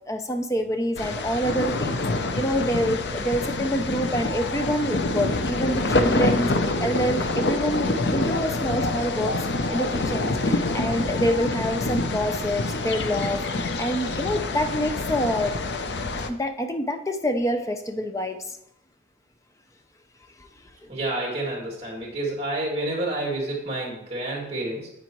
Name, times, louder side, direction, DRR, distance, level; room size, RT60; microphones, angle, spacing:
voice 1, 0.1-9.4 9.7-15.5 16.3-18.6 20.4-20.5 20.8-20.9, equal, 20° left, 6 dB, 0.6 m, -27 dB
sound 1, 1.0-16.3, left 2 dB, 85° left, 0.7 m, -26 dB
voice 2, 20.9-24.9, right 2 dB, 35° right, -2 dB, 2.7 m, -29 dB
9.6 x 8.1 x 3.1 m, 0.82 s
head